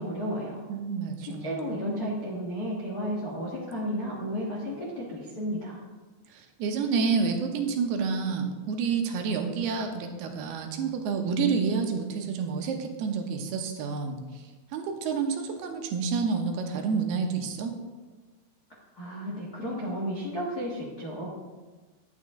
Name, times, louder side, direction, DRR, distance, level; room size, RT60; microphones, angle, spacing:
voice 1, 0.0-0.6 1.2-5.8 19.0-21.3, equal, 50° left, -5 dB, 1.1 m, -33 dB
voice 2, 0.7-1.7 6.3-14.4 14.7-17.7, right 5 dB, 75° right, 4 dB, 3.0 m, -29 dB
11.0 x 9.5 x 3.8 m, 1.3 s
omnidirectional pair, 4.7 m